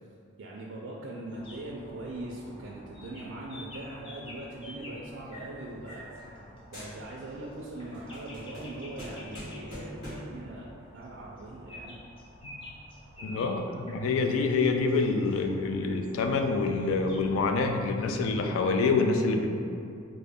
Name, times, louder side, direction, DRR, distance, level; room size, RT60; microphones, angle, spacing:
voice 1, 0.4-6.1 6.7-12.0 13.2-13.6, right 1 dB, 70° right, -3 dB, 0.3 m, -41 dB
sound 1, 1.3-18.5, left 1 dB, 25° left, 0.6 m, -49 dB
sound 2, 5.1-6.5 6.7-7.4 7.7-10.4, equal, 55° left, 1.4 m, -44 dB
voice 2, 13.2-19.5, left 3 dB, 90° left, 5 dB, 0.3 m, -26 dB
3.7 x 2.1 x 3.4 m, 2.5 s
head